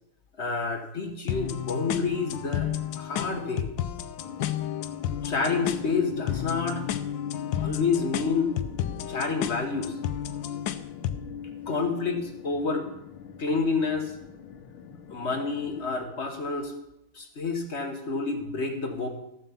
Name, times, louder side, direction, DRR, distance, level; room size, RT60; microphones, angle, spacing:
voice 1, 0.4-2.7 3.0-3.7 5.2-6.8 7.6-8.5 9.1-10.0 11.7-12.9 13.4-14.1 15.1-16.7 17.1-19.1, left 4 dB, 40° left, 5 dB, 1.2 m, -28 dB
sound 1, 1.3-11.3, left 10 dB, 70° left, 1.4 m, -32 dB
sound 2, 4.2-15.8, left 8 dB, 85° left, 1.7 m, -40 dB
14.0 x 7.4 x 7.0 m, 0.88 s
omnidirectional pair, 2.2 m